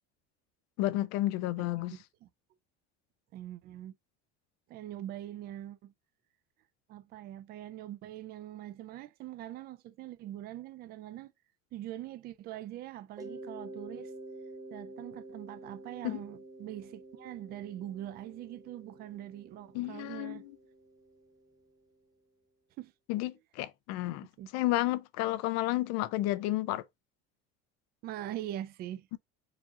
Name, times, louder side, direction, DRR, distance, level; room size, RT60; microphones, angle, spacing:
voice 1, 0.8-2.0 16.0-16.2 19.7-20.5 23.1-24.3 24.5-26.8 29.1-29.2, left 16 dB, 60° left, 0.5 m, -31 dB
voice 2, 3.3-3.9 4.7-5.9 6.9-11.3 11.7-14.1 14.7-20.4 22.8-22.9 24.4-24.5 28.0-29.1, right 12 dB, 35° right, 0.4 m, -43 dB
Mallet percussion, 13.2-21.8, right 2 dB, 10° right, 0.8 m, -49 dB
4.8 x 2.8 x 3.6 m
cardioid pair, 175°, 29 cm